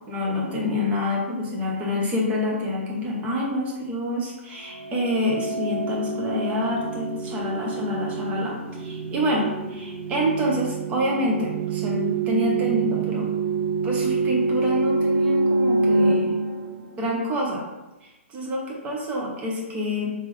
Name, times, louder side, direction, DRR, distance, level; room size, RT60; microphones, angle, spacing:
voice 1, 0.1-13.3 13.8-16.3 17.0-17.6 18.0-20.1, left 1 dB, 20° right, -3 dB, 0.9 m, -27 dB
sound 1, 4.7-17.4, right 3 dB, 70° right, 0.6 m, -26 dB
3.5 x 3.3 x 3.3 m, 1.1 s
hypercardioid pair, 150°, 7 cm